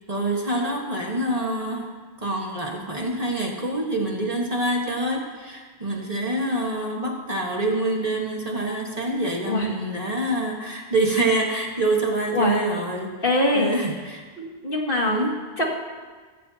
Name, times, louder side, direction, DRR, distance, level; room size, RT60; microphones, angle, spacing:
voice 1, 0.1-13.1 13.5-14.2 15.1-15.4, right 1 dB, 35° right, -1 dB, 1.6 m, -26 dB
voice 2, 13.2-13.7 14.4-15.2 15.6-15.7, left 1 dB, 50° left, -2 dB, 2.5 m, -22 dB
17.0 x 16.0 x 2.8 m, 1.4 s
omnidirectional pair, 1.2 m